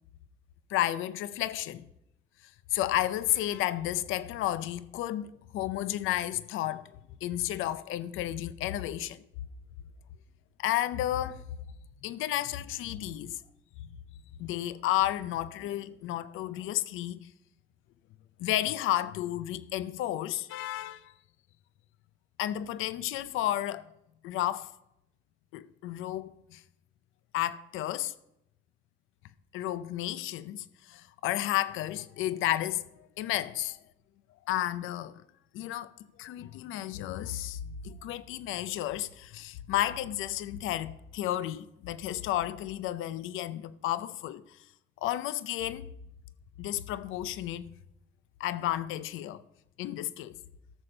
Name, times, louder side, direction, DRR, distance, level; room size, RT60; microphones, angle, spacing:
voice 1, 0.7-1.9 2.7-6.9 7.2-9.2 10.6-11.4 12.0-13.4 14.4-17.2 18.4-21.1 22.4-23.9 24.2-24.7 25.5-26.6 27.3-28.1 29.5-33.8 34.5-35.2 35.5-35.9 36.2-44.4 45.0-45.9 46.6-47.6 48.4-49.4 49.8-50.4, left 13 dB, 90° left, 0.5 m, -32 dB
14.0 x 6.8 x 4.4 m
cardioid pair, 90°, 20 cm